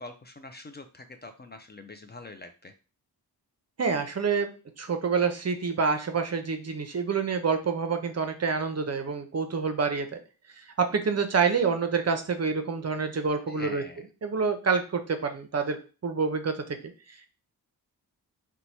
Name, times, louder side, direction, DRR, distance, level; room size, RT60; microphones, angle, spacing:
voice 1, 0.0-2.7 13.5-14.0, left 2 dB, 25° left, 7 dB, 0.4 m, -44 dB
voice 2, 3.8-4.5 4.8-10.2 10.7-13.8 14.2-16.9, right 5 dB, 40° right, 7 dB, 0.6 m, -27 dB
2.9 x 2.2 x 4.1 m, 0.34 s
cardioid pair, 55°, 39 cm